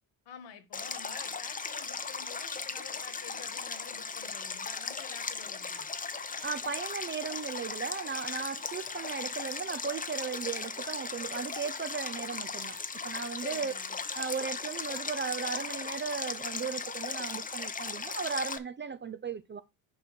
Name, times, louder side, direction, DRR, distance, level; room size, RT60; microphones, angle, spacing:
voice 1, 0.3-5.9 13.4-14.0, left 8 dB, 65° left, 1.7 m, -49 dB
Stream, 0.7-18.6, left 5 dB, 15° left, 0.7 m, -37 dB
voice 2, 6.4-12.8 13.0-13.7 14.1-19.6, right 6 dB, 25° right, 0.4 m, -36 dB
6.4 x 3.7 x 6.0 m
supercardioid pair, 85°, 47 cm